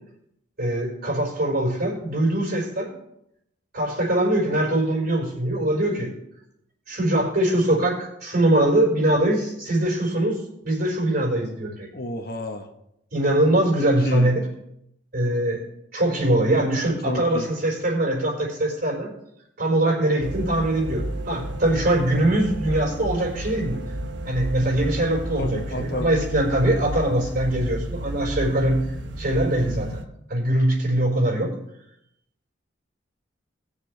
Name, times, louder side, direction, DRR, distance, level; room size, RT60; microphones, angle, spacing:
voice 1, 0.6-2.9 3.7-6.1 6.9-11.9 13.1-14.4 15.1-15.6 15.9-19.1 19.6-23.8 24.2-28.8 29.2-30.0 30.3-31.5, right 1 dB, 55° right, -2 dB, 4.8 m, -22 dB
voice 2, 11.9-12.7 13.8-14.3 17.0-17.5 25.3-26.2, left 1 dB, 55° left, 4 dB, 1.3 m, -31 dB
sound 1, 20.2-30.0, right 1 dB, 70° right, 1.0 m, -32 dB
20.0 x 7.0 x 3.4 m, 0.79 s
head